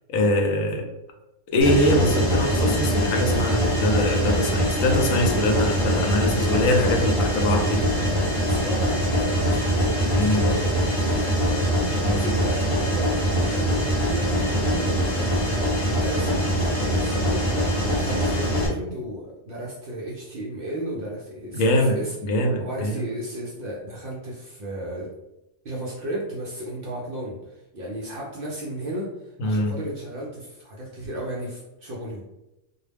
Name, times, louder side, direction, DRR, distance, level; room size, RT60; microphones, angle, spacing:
voice 1, 0.1-0.9 1.5-8.1 10.1-10.5 12.0-12.3 21.5-23.0 29.4-29.8, left 1 dB, 80° left, 3 dB, 0.9 m, -23 dB
Mechanisms, 1.6-18.7, equal, 30° left, 0.7 m, -23 dB
voice 2, 8.3-15.4 15.8-22.1 22.6-25.1 25.6-32.2, right 1 dB, 60° right, -4 dB, 0.6 m, -34 dB
2.3 x 2.0 x 3.2 m, 0.92 s
omnidirectional pair, 1.4 m